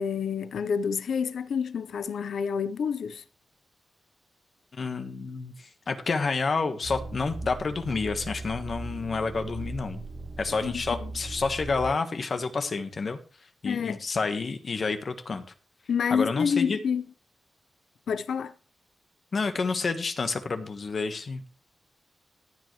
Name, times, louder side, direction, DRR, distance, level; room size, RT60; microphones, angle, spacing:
voice 1, 0.0-3.2 10.6-11.1 13.6-14.0 15.9-17.0 18.1-18.5, left 6 dB, 85° left, 0.8 m, -28 dB
voice 2, 4.7-10.0 10.4-13.2 13.6-15.4 16.1-16.8 19.3-21.5, left 4 dB, 45° left, 1.4 m, -29 dB
sound 1, 6.8-11.9, right 2 dB, 65° right, 2.8 m, -38 dB
15.0 x 9.2 x 3.2 m
wide cardioid pair, 145°, 0 cm